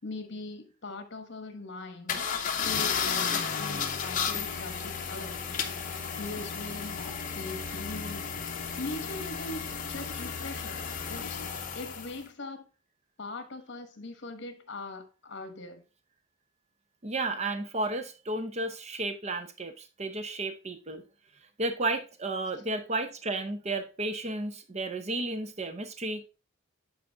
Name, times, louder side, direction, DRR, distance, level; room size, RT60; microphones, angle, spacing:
voice 1, 0.0-2.2 2.6-5.4 6.2-7.0 7.3-8.3 8.8-11.4 11.7-12.6 13.2-15.8, left 2 dB, 60° left, 1.1 m, -41 dB
sound 1, 2.1-12.2, left 6 dB, 40° left, 0.8 m, -33 dB
voice 2, 17.0-21.0 21.6-26.2, right 2 dB, 35° right, 0.7 m, -33 dB
8.6 x 4.2 x 3.4 m
head